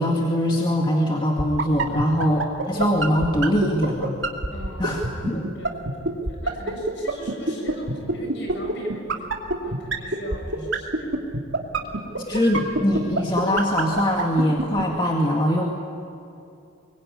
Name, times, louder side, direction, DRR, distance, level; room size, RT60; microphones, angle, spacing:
voice 1, 0.0-4.1 4.8-5.5 12.3-15.6, equal, 20° left, 0 dB, 2.1 m, -22 dB
sound 1, 1.4-14.8, right 2 dB, 60° right, 2.7 m, -23 dB
voice 2, 4.5-9.3 9.6-11.2 11.7-12.2, equal, 55° left, 2 dB, 7.0 m, -40 dB
24.5 x 23.0 x 9.7 m, 2.7 s
head